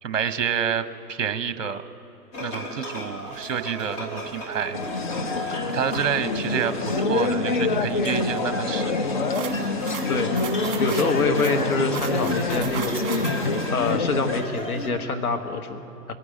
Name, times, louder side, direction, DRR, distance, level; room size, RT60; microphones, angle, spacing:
voice 1, 0.0-1.8 2.4-4.8 5.7-6.7 7.1-8.9, right 8 dB, 50° right, 12 dB, 0.9 m, -28 dB
sound 1, 2.3-14.9, equal, 15° left, 1.0 m, -35 dB
sound 2, 4.7-14.4, left 3 dB, 35° left, 0.5 m, -26 dB
sound 3, 9.3-13.7, right 8 dB, 35° right, 1.7 m, -36 dB
voice 2, 10.1-13.0 13.7-16.1, left 3 dB, 65° left, 5 dB, 1.5 m, -26 dB
22.5 x 9.6 x 5.0 m, 3.0 s
figure-of-eight pair, 125°, 48 cm